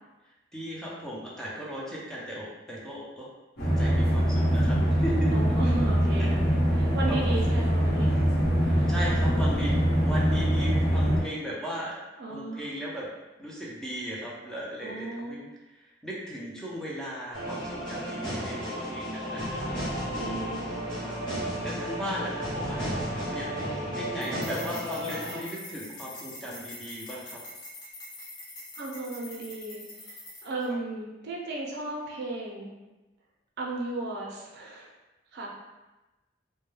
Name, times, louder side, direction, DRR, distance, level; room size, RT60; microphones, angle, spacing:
voice 1, 0.5-3.3 3.8-5.5 6.2-6.3 7.1-7.4 8.6-12.0 12.3-13.1 13.4-19.7 20.1-20.4 21.6-27.4, equal, 5° left, -6 dB, 0.4 m, -37 dB
sound 1, 3.6-11.2, equal, 55° left, 0.9 m, -23 dB
voice 2, 5.3-8.3 8.7-9.4 12.2-12.7 14.8-15.4 20.2-21.3 28.8-30.2 30.4-32.8 33.6-34.9 35.3-35.5, right 2 dB, 60° right, -2 dB, 0.5 m, -35 dB
sound 2, 17.3-25.4, equal, 25° left, 1.0 m, -33 dB
sound 3, 24.2-30.7, left 1 dB, 85° left, 0.8 m, -44 dB
2.2 x 2.2 x 3.1 m, 1.1 s
head